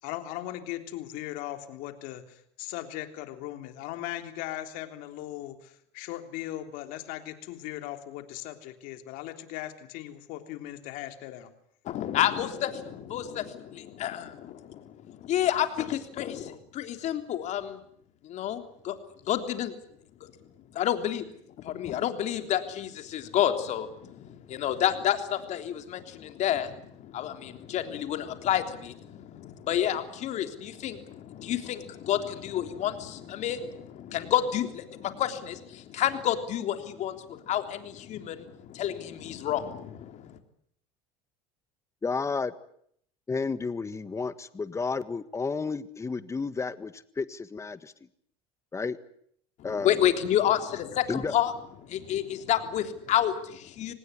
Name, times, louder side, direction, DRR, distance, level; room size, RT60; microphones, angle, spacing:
voice 1, 0.0-11.5, left 14 dB, 70° left, 8 dB, 3.4 m, -38 dB
voice 2, 11.8-17.8 18.2-19.0 19.2-19.7 20.2-20.3 20.7-21.2 21.6-40.4 49.6-51.5 51.8-53.9, left 11 dB, 55° left, 8 dB, 3.4 m, -30 dB
voice 3, 42.0-42.5 43.3-47.9 48.7-49.0 49.6-50.0 51.1-51.3, left 4 dB, 20° left, 14 dB, 1.6 m, -32 dB
26.0 x 19.0 x 9.8 m, 0.68 s
supercardioid pair, 110°, 15 cm